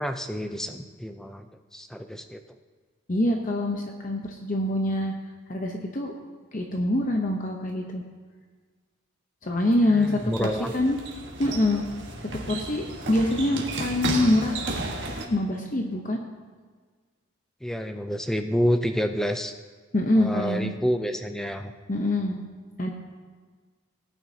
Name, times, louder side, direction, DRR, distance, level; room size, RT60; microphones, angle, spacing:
voice 1, 0.0-2.4 9.8-10.7 17.6-19.5 20.2-21.7, equal, ahead, 7 dB, 0.4 m, -28 dB
voice 2, 3.1-5.1 5.5-6.1 6.5-8.0 9.4-10.5 10.7-11.0 11.4-11.8 12.5-14.6 15.3-16.2 19.9-20.7 21.9-22.4 22.8-22.9, left 1 dB, 40° left, 2 dB, 0.8 m, -25 dB
sound 1, 9.6-15.2, right 2 dB, 60° right, 1.5 m, -34 dB
18.5 x 9.3 x 2.8 m, 1.5 s
head